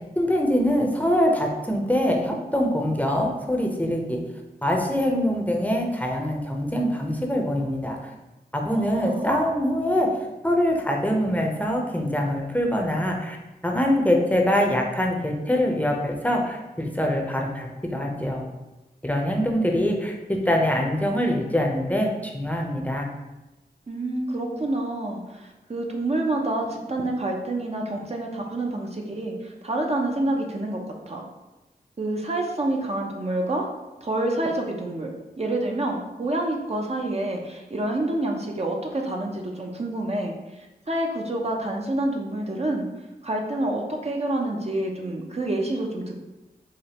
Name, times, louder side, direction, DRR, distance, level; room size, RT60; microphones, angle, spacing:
voice 1, 0.2-4.2 4.6-8.1 8.5-10.1 10.4-13.4 13.6-18.4 19.0-23.1, equal, 10° left, 0 dB, 0.7 m, -24 dB
voice 2, 8.7-9.3 23.9-30.8 31.1-31.2 32.0-33.7 34.0-42.9 43.2-46.2, right 1 dB, 40° right, 0 dB, 0.6 m, -28 dB
4.9 x 2.1 x 2.9 m, 1.0 s
cardioid pair, 40°, 17 cm